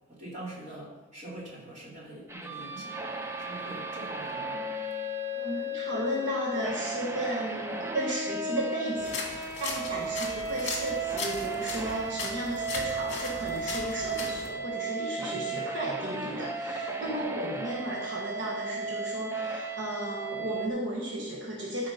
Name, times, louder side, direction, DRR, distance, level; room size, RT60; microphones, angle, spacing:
voice 1, 0.1-3.0 3.4-4.6 17.0-17.5, right 1 dB, 35° right, -6 dB, 3.4 m, -44 dB
sound 1, 2.3-20.7, right 2 dB, 10° right, 0.5 m, -35 dB
voice 2, 5.3-21.9, right 1 dB, 70° right, -2 dB, 1.3 m, -34 dB
sound 2, 9.0-14.5, left 4 dB, 35° left, 1.8 m, -38 dB
13.0 x 4.9 x 5.6 m, 1.1 s
head